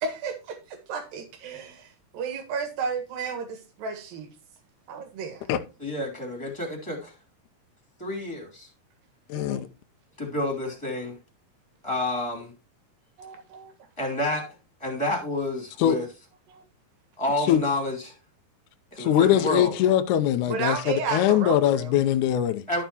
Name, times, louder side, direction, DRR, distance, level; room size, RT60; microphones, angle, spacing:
voice 1, 0.0-4.3 4.9-5.5 9.3-9.6 13.2-13.7 16.5-16.6 19.0-19.1 20.5-22.0, right 5 dB, 80° right, 3.4 m, -33 dB
voice 2, 5.8-7.1 8.0-8.7 10.2-11.1 11.8-12.5 14.0-14.5 14.8-16.1 17.2-18.2 18.9-19.7 22.7-22.8, left 1 dB, 10° left, 2.5 m, -29 dB
voice 3, 9.3-9.7 15.8-16.0 17.5-17.6 19.0-22.6, left 11 dB, 75° left, 2.1 m, -22 dB
12.5 x 6.9 x 3.0 m
omnidirectional pair, 4.0 m